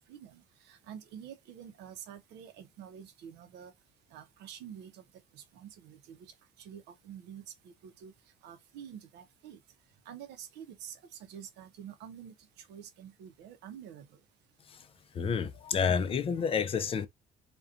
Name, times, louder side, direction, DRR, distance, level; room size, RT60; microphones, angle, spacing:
voice 1, 0.1-3.7 4.1-5.0 5.3-6.3 6.6-8.1 8.4-9.6 10.1-14.1, right 9 dB, 80° right, 0.5 m, -48 dB
voice 2, 15.1-17.1, left 6 dB, 35° left, 0.4 m, -30 dB
2.5 x 2.2 x 2.4 m
cardioid pair, 110°, 17 cm